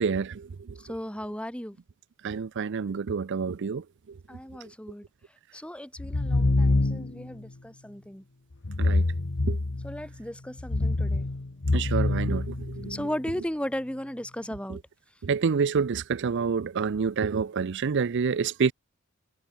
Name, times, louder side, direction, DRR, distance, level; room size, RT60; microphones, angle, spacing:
voice 1, 0.0-0.8 2.2-4.2 8.8-9.1 9.5-9.6 11.7-13.0 14.7-14.8 15.2-18.7, right 5 dB, 55° right, 0.5 m, -28 dB
voice 2, 0.8-1.8 4.3-5.1 5.5-8.2 9.8-11.3 12.9-14.8, equal, 5° left, 2.2 m, -36 dB
sound 1, 6.0-7.3 8.6-10.1 10.6-13.1, left 2 dB, 60° left, 1.1 m, -26 dB
head